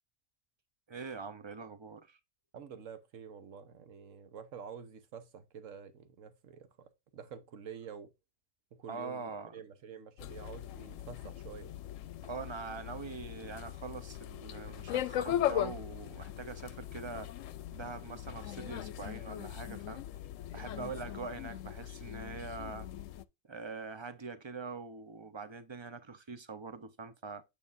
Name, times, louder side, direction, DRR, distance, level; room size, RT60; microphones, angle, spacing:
voice 1, 0.9-2.2 8.9-9.6 12.2-17.3 17.7-20.1 20.5-22.9 23.5-27.4, right 4 dB, 30° right, 0.6 m, -43 dB
voice 2, 2.5-8.1 8.7-11.8 20.7-21.0, right 7 dB, 85° right, 1.4 m, -48 dB
sound 1, 10.2-23.2, left 12 dB, 80° left, 0.9 m, -39 dB
9.3 x 5.1 x 2.5 m
omnidirectional pair, 1.3 m